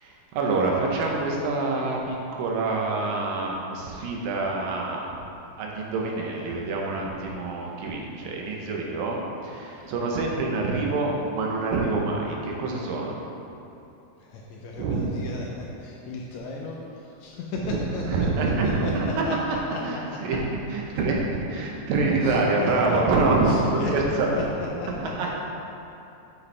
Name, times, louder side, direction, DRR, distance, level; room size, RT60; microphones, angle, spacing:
voice 1, 0.0-5.1 5.6-13.2 14.8-15.3 17.6-19.2 19.8-20.4 20.7-24.5 25.0-25.3, right 3 dB, 90° right, -1 dB, 2.6 m, -26 dB
voice 2, 14.3-16.8 17.2-19.3 19.7-19.8 20.3-20.4 22.2-23.9 24.3-24.4 24.8-25.1, left 3 dB, 80° left, -3 dB, 1.6 m, -34 dB
7.0 x 6.8 x 3.3 m, 2.8 s
omnidirectional pair, 3.9 m